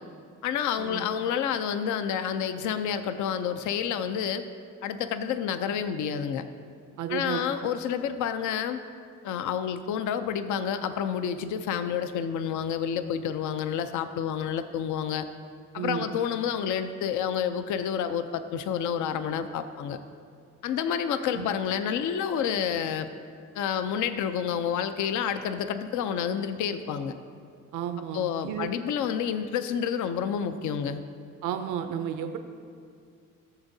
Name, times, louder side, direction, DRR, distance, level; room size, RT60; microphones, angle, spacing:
voice 1, 0.4-4.4 4.8-6.4 7.1-8.8 9.2-15.3 15.7-20.0 20.6-23.1 23.5-27.1 28.1-31.0, left 8 dB, 75° left, 10 dB, 0.5 m, -29 dB
voice 2, 7.0-7.7 15.8-16.1 21.3-21.5 27.7-28.7 31.4-32.4, right 9 dB, 80° right, 7 dB, 0.5 m, -32 dB
14.5 x 7.0 x 2.7 m, 2.2 s
cardioid pair, 90°, 30 cm